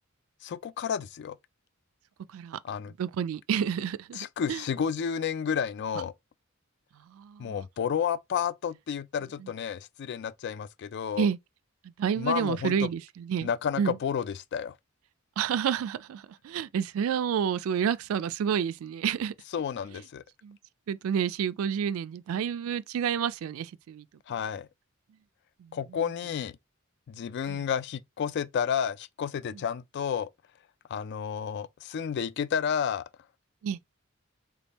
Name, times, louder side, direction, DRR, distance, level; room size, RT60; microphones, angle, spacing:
voice 1, 0.4-1.4 2.6-2.9 4.1-6.1 7.4-11.3 12.2-12.9 13.4-14.7 19.5-20.2 24.3-24.7 25.7-26.5 27.1-30.3 30.9-33.0, left 7 dB, 55° left, 0.3 m, -31 dB
voice 2, 3.0-4.6 7.1-7.6 11.2-11.4 12.0-13.5 13.8-14.0 15.4-19.3 20.4-20.6 20.9-24.0 25.6-25.8 27.5-27.6 29.5-29.6 33.6-33.8, right 8 dB, 75° right, 0.3 m, -29 dB
3.4 x 2.2 x 4.0 m
head